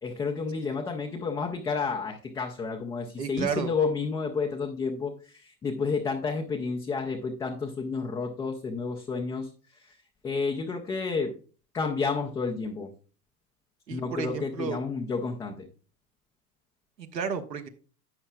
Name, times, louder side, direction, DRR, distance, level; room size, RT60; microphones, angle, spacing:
voice 1, 0.0-9.5 9.8-9.9 10.2-11.3 11.7-12.9 13.9-15.7, left 4 dB, 10° left, -1 dB, 0.3 m, -30 dB
voice 2, 3.2-3.7 13.9-14.8 17.0-17.7, right 6 dB, 85° right, 6 dB, 1.2 m, -32 dB
11.5 x 7.9 x 2.3 m, 0.38 s
figure-of-eight pair, 90°, 48 cm